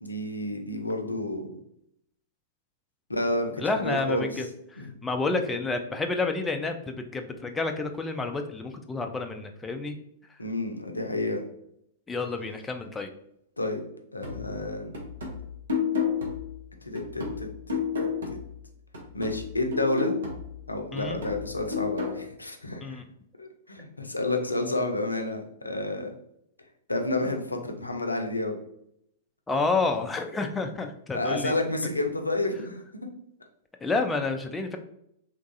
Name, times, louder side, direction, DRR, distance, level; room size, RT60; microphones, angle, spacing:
voice 1, 0.0-1.5 3.1-4.4 4.8-5.0 10.4-11.4 13.6-13.8 14.1-14.9 16.9-17.8 18.3-18.4 19.1-20.2 20.7-23.0 23.4-26.1 26.9-28.6 31.1-32.8, left 2 dB, 90° left, 4 dB, 0.4 m, -30 dB
voice 2, 3.6-10.0 12.1-13.1 20.9-21.2 22.8-23.0 29.5-31.5 33.8-34.8, left 3 dB, 10° left, 5 dB, 0.3 m, -29 dB
sound 1, 14.2-18.7 18.9-22.2, left 6 dB, 70° right, 0.8 m, -32 dB
3.0 x 2.3 x 2.6 m, 0.75 s
figure-of-eight pair, 100°, 0 cm